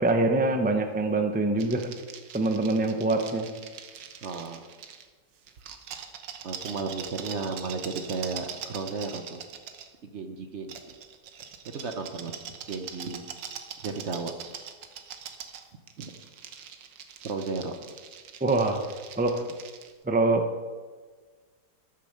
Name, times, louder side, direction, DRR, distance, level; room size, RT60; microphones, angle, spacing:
voice 1, 0.0-1.8 2.3-3.5 18.4-18.8 19.2-19.4 20.0-20.4, right 2 dB, 10° right, 5 dB, 0.4 m, -24 dB
sound 1, 1.6-5.1 5.5-9.9 10.7-19.9, right 8 dB, 90° right, 1.6 m, -43 dB
voice 2, 4.2-4.7 6.4-9.4 10.1-10.8 11.7-13.2 13.8-14.3 16.0-16.1 17.2-17.7, right 4 dB, 50° right, 6 dB, 0.9 m, -34 dB
13.5 x 6.8 x 6.6 m, 1.4 s
omnidirectional pair, 1.9 m